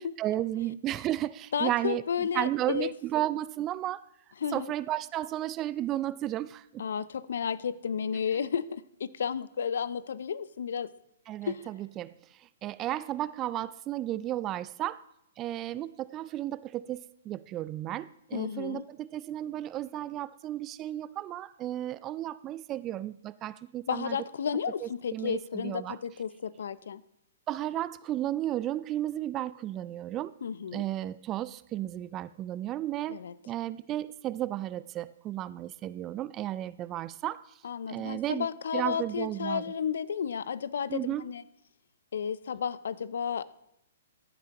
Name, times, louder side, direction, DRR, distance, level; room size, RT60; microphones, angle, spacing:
voice 1, 0.2-4.1 4.5-6.8 11.3-15.0 15.4-24.2 24.8-26.0 27.5-30.3 30.7-37.6 37.9-38.5 38.7-39.6 40.9-41.3, right 13 dB, 30° right, 17 dB, 0.3 m, -33 dB
voice 2, 1.5-2.9 4.4-4.7 6.8-10.9 11.5-11.7 18.3-18.8 23.9-27.0 30.4-30.8 33.1-33.3 37.6-41.4 42.1-43.4, left 7 dB, 70° left, 18 dB, 0.5 m, -32 dB
14.5 x 9.1 x 3.0 m, 0.78 s
hypercardioid pair, 125°, 0 cm